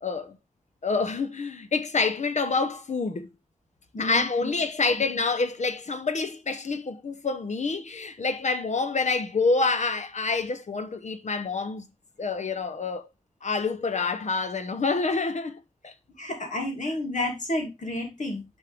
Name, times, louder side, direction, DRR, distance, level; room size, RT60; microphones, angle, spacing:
voice 1, 0.0-0.4 0.8-3.3 4.0-11.9 12.2-13.1 13.4-15.9, left 4 dB, 70° left, 0.8 m, -27 dB
voice 2, 3.9-4.5 16.2-18.4, left 1 dB, 85° left, 2.6 m, -31 dB
9.1 x 5.4 x 3.5 m
wide cardioid pair, 85°, 12 cm